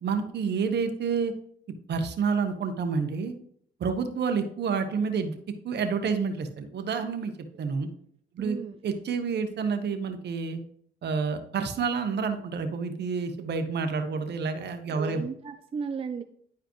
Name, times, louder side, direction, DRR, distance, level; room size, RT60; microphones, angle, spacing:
voice 1, 0.0-1.3 1.9-3.3 3.8-5.4 5.6-7.3 7.6-7.9 8.3-8.6 8.8-10.6 11.0-15.2, right 5 dB, 60° right, 7 dB, 1.1 m, -29 dB
voice 2, 8.4-8.8 15.0-16.2, right 5 dB, 30° right, 7 dB, 0.5 m, -35 dB
10.5 x 4.9 x 3.0 m, 0.64 s
cardioid pair, 90°, 20 cm